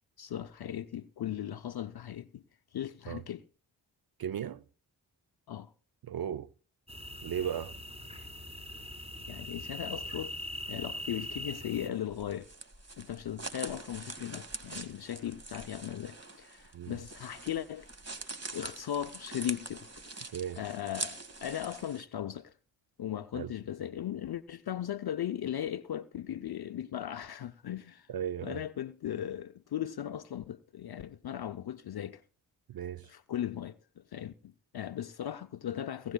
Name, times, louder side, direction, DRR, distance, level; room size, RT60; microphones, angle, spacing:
voice 1, 0.2-2.4 2.7-3.4 5.5-5.7 9.3-10.3 10.7-12.5 13.0-17.9 18.5-19.9 20.1-20.3 20.6-22.5 23.0-28.1 28.4-32.2 33.1-36.1, left 10 dB, 55° left, 0.6 m, -37 dB
voice 2, 4.2-4.6 6.0-6.5 7.2-7.7 16.7-17.0 20.3-20.6 23.3-23.5 28.1-28.6 32.7-33.1, right 9 dB, 55° right, 0.6 m, -36 dB
sound 1, 6.9-11.9, left 1 dB, 15° right, 4.2 m, -41 dB
sound 2, 11.9-22.0, right 3 dB, 35° right, 2.0 m, -44 dB
18.5 x 17.5 x 2.3 m
cardioid pair, 45°, 44 cm